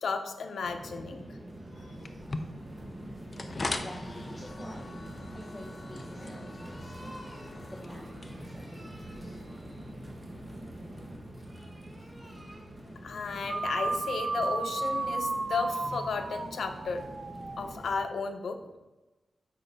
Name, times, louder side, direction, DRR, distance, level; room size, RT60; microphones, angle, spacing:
voice 1, 0.0-1.2 13.0-17.0 17.6-18.8, left 4 dB, 80° left, 7 dB, 0.7 m, -33 dB
sound 1, 0.6-18.0, right 1 dB, 15° right, 1.3 m, -44 dB
sound 2, 2.0-9.9, left 2 dB, 30° left, 0.5 m, -42 dB
voice 2, 3.7-5.0 5.3-9.4 10.5-10.6, left 1 dB, 5° left, -2 dB, 0.8 m, -49 dB
sound 3, 13.5-18.0, right 3 dB, 35° right, 0.4 m, -34 dB
6.9 x 5.0 x 5.2 m, 1.1 s
wide cardioid pair, 160°, 0 cm